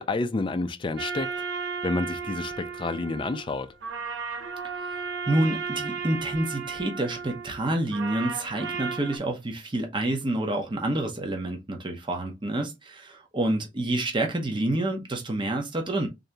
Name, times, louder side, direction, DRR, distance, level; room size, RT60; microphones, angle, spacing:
voice 1, 0.0-1.3 1.8-3.7, left 3 dB, 25° left, 0.4 m, -29 dB
sound 1, 1.0-9.2, right 5 dB, 80° right, 0.7 m, -34 dB
voice 2, 4.7-16.1, right 1 dB, 25° right, 0.8 m, -28 dB
3.8 x 2.7 x 3.3 m
head